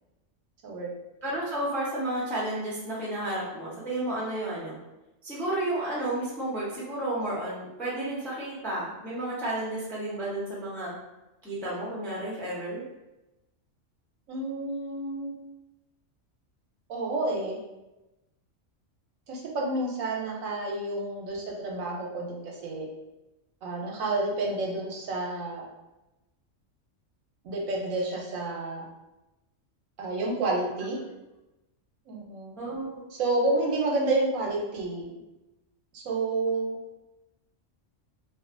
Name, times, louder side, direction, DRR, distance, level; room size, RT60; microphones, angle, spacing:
voice 1, 1.2-4.8 5.2-10.9 11.4-12.8 32.6-33.0, right 1 dB, 5° left, -7 dB, 0.5 m, -32 dB
voice 2, 14.3-15.4 16.9-17.6 19.3-22.8 23.6-25.6 27.4-28.8 30.0-31.0 32.1-32.6 33.2-35.1 35.9-36.8, right 2 dB, 80° right, -1 dB, 1.0 m, -29 dB
2.5 x 2.3 x 2.5 m, 0.99 s
omnidirectional pair, 1.3 m